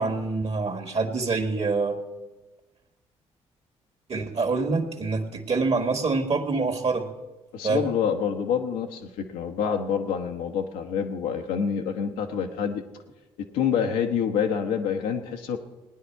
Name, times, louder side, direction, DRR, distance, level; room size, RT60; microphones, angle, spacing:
voice 1, 0.0-2.0 4.1-7.1 7.6-7.9, right 4 dB, 45° right, 5 dB, 1.8 m, -26 dB
voice 2, 7.5-12.8 13.4-15.6, left 7 dB, 85° left, 5 dB, 1.1 m, -27 dB
18.5 x 9.9 x 4.7 m, 1.1 s
hypercardioid pair, 50°, 14 cm